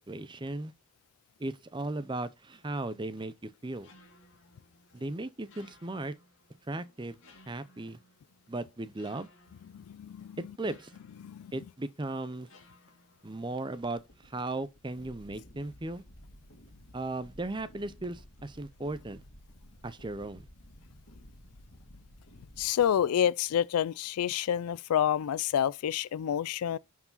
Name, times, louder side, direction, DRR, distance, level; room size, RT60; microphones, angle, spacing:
voice 1, 0.1-0.7 1.4-3.9 4.9-6.1 6.7-7.2 7.5-8.0 8.5-9.3 10.4-10.9 11.5-12.5 13.2-16.0 16.9-19.2 19.8-20.5, right 2 dB, 20° right, 0.5 m, -36 dB
sound 1, 3.8-22.9, left 1 dB, 55° left, 2.6 m, -56 dB
voice 2, 9.7-10.4 11.2-11.5 22.6-26.8, left 9 dB, 85° left, 0.3 m, -28 dB
11.5 x 4.7 x 3.9 m
head